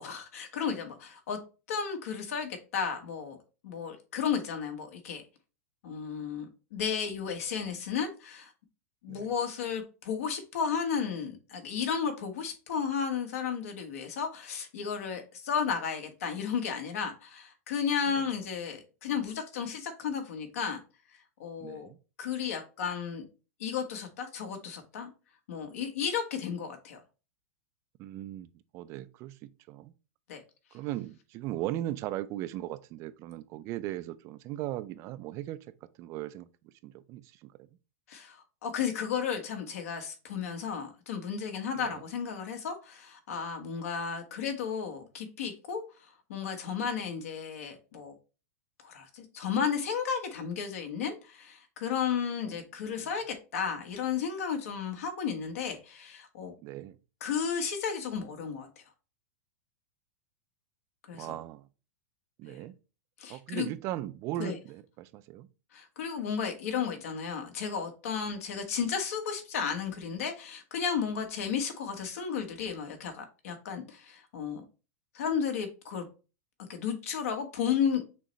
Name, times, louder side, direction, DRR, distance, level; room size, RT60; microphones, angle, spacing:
voice 1, 0.0-1.4 1.7-3.4 3.6-5.2 5.8-8.5 9.0-20.8 21.4-21.9 22.2-23.2 23.6-25.1 25.5-27.0 30.3-30.4 38.1-45.8 46.3-48.1 48.8-56.5 57.2-58.8 61.1-61.4 62.5-62.6 63.2-63.7 64.4-64.6 65.7-74.6 75.1-76.1 76.7-78.0, left 7 dB, 75° left, 1.3 m, -33 dB
voice 2, 21.6-22.0 28.0-28.5 28.7-29.9 30.7-35.6 36.0-36.5 36.8-37.5 41.8-42.0 52.4-52.6 56.6-57.0 61.1-61.7 62.4-62.7 63.3-65.5, right 14 dB, 35° right, 0.3 m, -38 dB
6.2 x 2.2 x 4.0 m
supercardioid pair, 140°, 8 cm